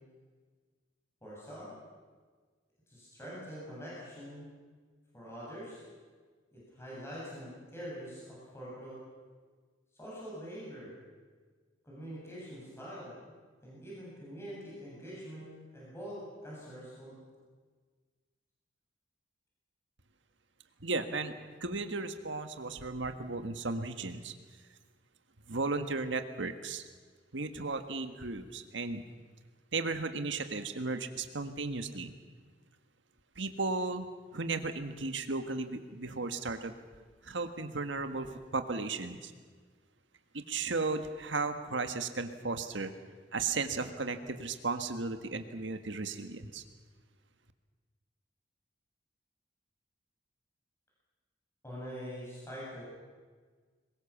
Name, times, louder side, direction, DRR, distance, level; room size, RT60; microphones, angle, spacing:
voice 1, 1.2-1.7 2.9-4.5 5.1-5.8 6.5-9.0 9.9-11.0 11.8-13.2 13.6-15.5 15.7-17.1 51.6-52.8, equal, 15° left, -7 dB, 7.9 m, -44 dB
voice 2, 20.8-21.3 21.6-24.3 25.5-26.8 27.3-29.0 29.7-32.1 33.3-34.1 34.3-36.7 37.2-38.3 38.5-39.3 40.3-42.9 43.3-46.6, right 3 dB, 80° right, 8 dB, 1.6 m, -35 dB
22.5 x 20.5 x 7.2 m, 1.5 s
head